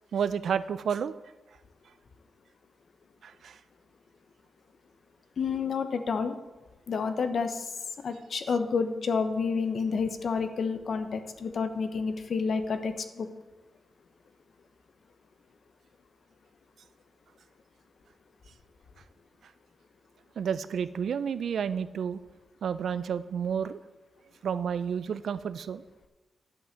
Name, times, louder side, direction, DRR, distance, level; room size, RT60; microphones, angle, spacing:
voice 1, 0.1-1.1 3.2-3.6 20.4-22.2 22.6-23.8 24.4-25.8, right 7 dB, 75° right, 14 dB, 0.5 m, -30 dB
voice 2, 5.4-6.4 6.9-7.7 8.0-13.3, left 5 dB, 60° left, 9 dB, 0.9 m, -29 dB
10.5 x 5.8 x 7.5 m, 1.2 s
wide cardioid pair, 115°, 0 cm